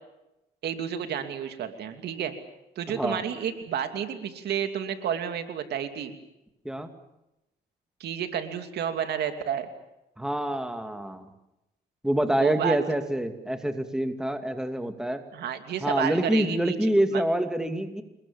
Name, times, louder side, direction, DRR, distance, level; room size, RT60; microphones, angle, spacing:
voice 1, 0.6-2.3 2.8-6.2 8.0-9.7 12.4-12.8 15.3-16.8 17.1-17.2, right 8 dB, 75° right, 7 dB, 2.9 m, -31 dB
voice 2, 2.9-3.2 6.6-6.9 10.2-11.3 12.0-15.2 15.8-18.0, right 1 dB, 5° right, 7 dB, 2.4 m, -26 dB
28.0 x 21.0 x 7.1 m, 0.91 s
cardioid pair, 100°, 17 cm